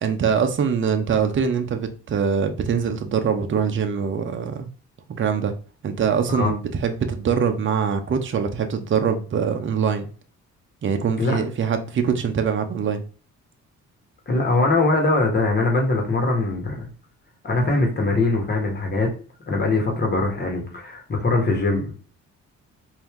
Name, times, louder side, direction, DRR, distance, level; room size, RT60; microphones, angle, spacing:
voice 1, 0.0-4.7 5.1-5.5 5.8-10.1 10.8-13.0, right 6 dB, 40° right, 0.7 m, -23 dB
voice 2, 14.3-16.9 17.4-19.1 19.5-21.9, left 2 dB, 35° left, 1.4 m, -22 dB
4.3 x 2.7 x 3.6 m
cardioid pair, 90°, 30 cm